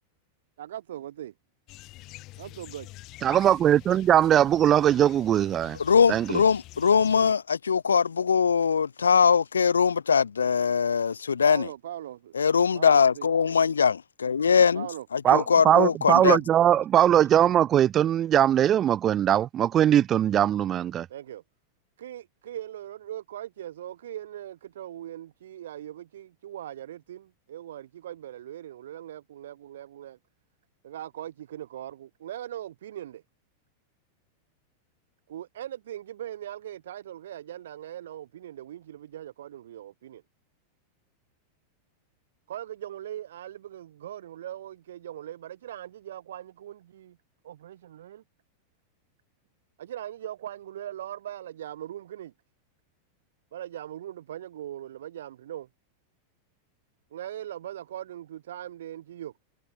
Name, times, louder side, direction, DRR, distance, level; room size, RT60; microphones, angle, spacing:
voice 1, 0.6-1.3 2.4-2.9 11.5-12.3 12.7-13.3 14.7-15.1 21.1-21.4 22.0-30.2 30.8-33.2 35.3-40.2 42.5-47.2 47.4-48.2 49.8-52.3 53.5-55.7 57.1-59.3, right 11 dB, 60° right, 2.6 m, -40 dB
sound 1, 1.7-7.3, left 19 dB, 40° left, 7.1 m, -47 dB
voice 2, 3.2-5.8 6.1-6.4 15.2-21.1, right 10 dB, 30° right, 0.5 m, -21 dB
voice 3, 5.8-11.7 12.3-14.9 15.1-16.4, left 6 dB, 70° left, 1.0 m, -22 dB
figure-of-eight pair, 90°, 0 cm